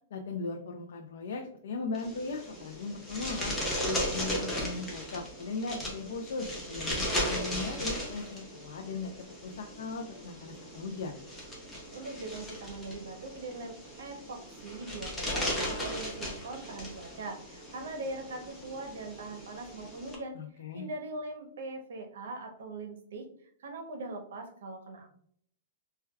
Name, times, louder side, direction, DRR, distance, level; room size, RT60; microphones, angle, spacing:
voice 1, 0.1-9.1 9.4-11.2 20.3-20.9, left 3 dB, 65° left, 2 dB, 0.4 m, -38 dB
sound 1, 1.9-20.1, equal, 5° left, 0.5 m, -37 dB
voice 2, 11.9-20.4 20.7-25.1, right 2 dB, 70° right, 5 dB, 0.7 m, -41 dB
4.5 x 2.2 x 2.2 m, 0.65 s
supercardioid pair, 180°, 0 cm